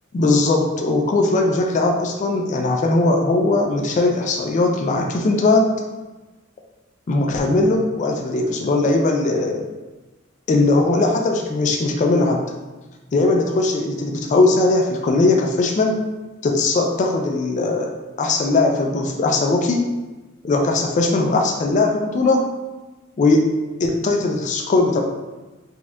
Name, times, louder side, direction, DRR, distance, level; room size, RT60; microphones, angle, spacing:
voice 1, 0.1-5.7 7.1-9.6 10.5-12.4 13.1-16.0 16.4-17.9 18.2-19.9 20.4-22.5 23.2-23.5 23.8-25.0, left 2 dB, 40° left, 1 dB, 0.3 m, -19 dB
4.2 x 2.3 x 2.3 m, 1.2 s
head